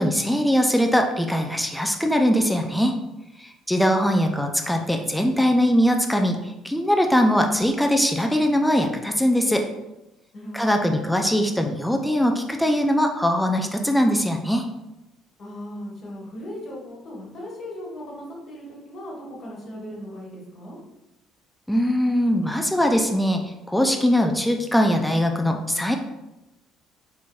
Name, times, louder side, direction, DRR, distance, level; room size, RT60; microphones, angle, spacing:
voice 1, 0.0-3.0 3.4-9.7 10.5-14.7 21.7-25.9, equal, 5° left, 3 dB, 0.4 m, -21 dB
voice 2, 10.3-10.9 15.4-20.8, equal, 55° left, -4 dB, 1.4 m, -37 dB
4.3 x 2.8 x 2.3 m, 0.96 s
hypercardioid pair, 55°, 0 cm